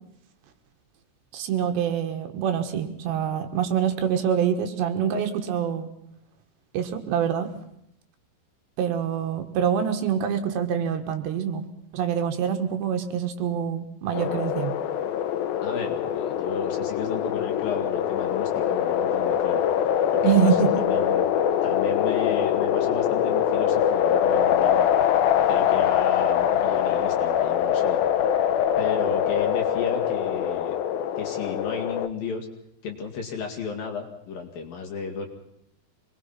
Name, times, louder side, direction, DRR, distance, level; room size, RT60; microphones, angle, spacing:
voice 1, 1.3-5.9 6.7-7.5 8.8-11.7 11.9-14.8 20.2-20.7, right 8 dB, 75° right, 6 dB, 3.5 m, -25 dB
sound 1, 14.1-32.1, left 9 dB, 75° left, 2.3 m, -23 dB
voice 2, 15.6-19.6 20.1-21.3 21.6-24.9 25.5-28.0 28.8-30.8 31.2-32.5 32.8-35.3, left 5 dB, 55° left, 3 dB, 3.8 m, -34 dB
25.0 x 20.5 x 5.8 m, 0.76 s
omnidirectional pair, 5.3 m